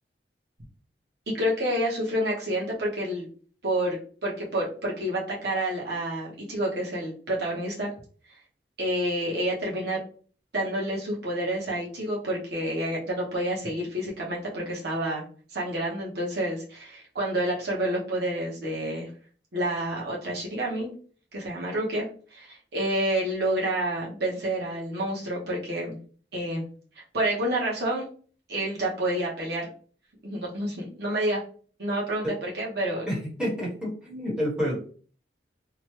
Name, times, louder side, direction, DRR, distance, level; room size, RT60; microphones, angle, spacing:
voice 1, 1.3-3.3 3.6-7.9 8.8-10.0 10.5-15.2 15.5-19.1 19.5-20.9 21.3-22.0 22.3-26.0 26.3-26.6 27.1-28.1 28.5-29.7 30.2-31.4 31.8-33.1, right 1 dB, 65° right, -4 dB, 0.9 m, -29 dB
voice 2, 33.1-34.8, equal, 5° right, -6 dB, 1.1 m, -29 dB
2.8 x 2.2 x 3.1 m, 0.43 s
head